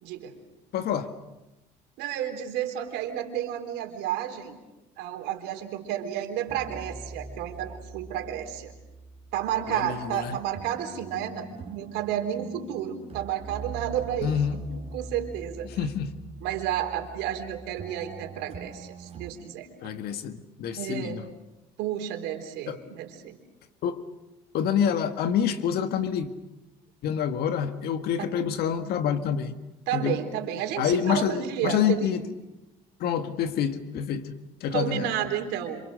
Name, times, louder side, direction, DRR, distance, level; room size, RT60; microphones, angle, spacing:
voice 1, 0.0-0.4 2.0-4.5 5.0-8.7 9.3-14.4 14.7-15.7 16.4-19.7 20.8-21.2 21.8-23.4 28.2-28.3 29.9-32.1 34.7-35.8, right 10 dB, 75° right, 5 dB, 3.8 m, -31 dB
voice 2, 0.7-1.1 9.7-10.4 14.2-14.6 15.6-16.1 19.8-21.2 22.7-22.8 23.8-24.0 24.5-26.3 27.0-29.6 29.9-30.2 30.8-32.2 33.0-35.1, left 8 dB, 65° left, 9 dB, 1.9 m, -27 dB
sound 1, 6.5-19.3, right 3 dB, 35° right, 3.1 m, -43 dB
28.0 x 26.5 x 6.6 m, 0.99 s
supercardioid pair, 85°, 18 cm